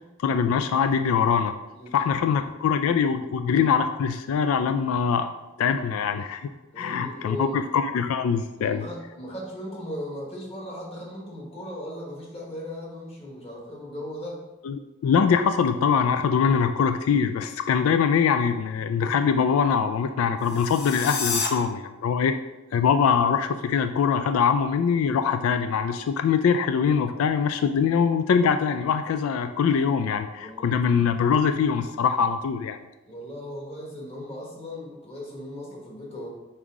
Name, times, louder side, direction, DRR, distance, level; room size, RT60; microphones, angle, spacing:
voice 1, 0.2-1.5 1.9-5.3 5.6-6.5 6.8-8.8 14.6-22.3 22.7-32.8, left 6 dB, 90° left, 9 dB, 0.3 m, -23 dB
voice 2, 1.7-2.3 6.7-7.6 8.5-14.4 30.4-30.7 33.1-36.3, left 1 dB, 30° left, -3 dB, 1.4 m, -37 dB
sound 1, 20.4-21.5, left 5 dB, 55° left, 0.7 m, -29 dB
5.5 x 4.7 x 3.7 m, 1.0 s
head